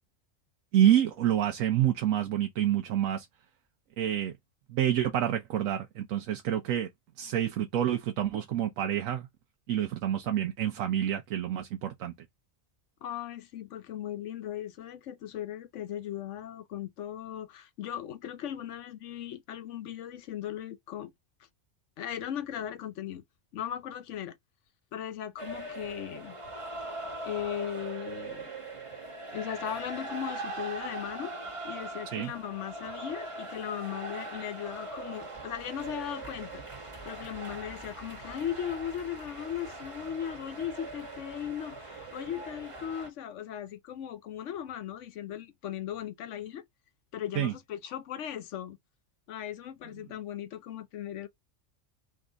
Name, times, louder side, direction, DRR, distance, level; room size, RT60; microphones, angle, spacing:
voice 1, 0.7-3.3 4.0-4.4 4.7-6.9 7.2-9.3 9.7-12.1 32.1-32.3 47.4-47.5, right 11 dB, 90° right, 1.1 m, -27 dB
voice 2, 13.0-21.1 22.0-23.2 23.5-24.4 24.9-26.4 27.2-28.5 29.3-31.3 31.6-36.6 37.0-46.6 47.1-48.8 49.3-51.3, left 10 dB, 70° left, 1.0 m, -38 dB
sound 1, 25.4-43.1, right 2 dB, 25° right, 1.1 m, -41 dB
3.6 x 3.1 x 3.9 m
omnidirectional pair, 1.3 m